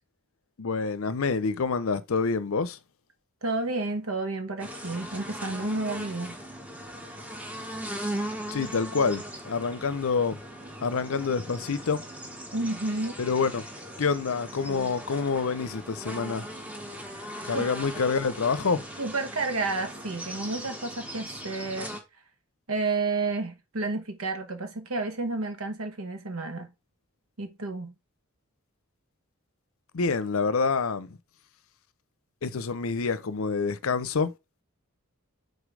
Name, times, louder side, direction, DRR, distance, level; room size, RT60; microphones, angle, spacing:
voice 1, 0.6-2.8 8.5-10.4 10.8-12.0 13.2-13.6 14.0-16.4 17.4-18.8 29.9-31.2 32.4-34.3, left 4 dB, 70° left, 0.6 m, -27 dB
voice 2, 3.4-6.4 12.5-13.2 17.5-17.7 19.0-21.9 22.7-26.7 27.4-27.9, right 3 dB, 75° right, 1.2 m, -31 dB
sound 1, 4.6-22.0, equal, 5° right, 1.0 m, -39 dB
5.1 x 3.9 x 4.9 m
head